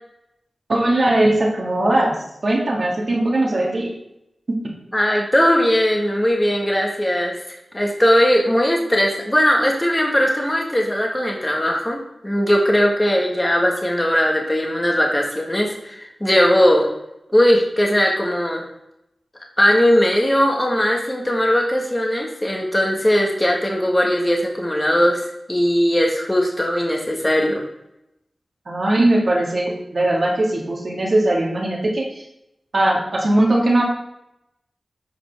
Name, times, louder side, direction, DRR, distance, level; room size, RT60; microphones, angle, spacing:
voice 1, 0.7-2.2 2.4-3.9 4.5-4.6 28.7-32.2 32.7-33.8, right 1 dB, 60° right, -2 dB, 1.8 m, -19 dB
voice 2, 4.9-7.4 7.7-16.9 17.3-18.7 19.6-27.6, equal, 20° left, 0 dB, 1.5 m, -19 dB
8.3 x 5.1 x 3.5 m, 0.83 s
cardioid pair, 45°, 0 cm